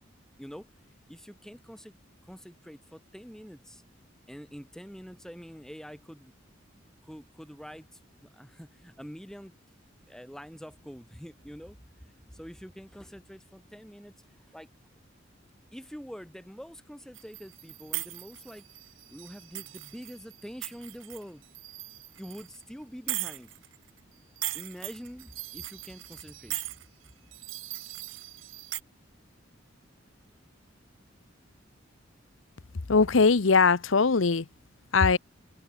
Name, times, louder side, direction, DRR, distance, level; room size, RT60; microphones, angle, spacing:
voice 1, 1.1-2.0 2.2-3.8 4.3-6.3 7.0-9.5 10.1-14.1 14.4-14.7 15.7-18.6 19.1-21.4 22.2-23.5 24.5-26.6, equal, 5° left, 3.2 m, -45 dB
sound 1, 17.1-22.6 23.1-24.0 24.4-28.8, right 17 dB, 90° right, 1.0 m, -39 dB
voice 2, 32.9-34.5 34.9-35.2, left 4 dB, 85° left, 0.9 m, -21 dB
head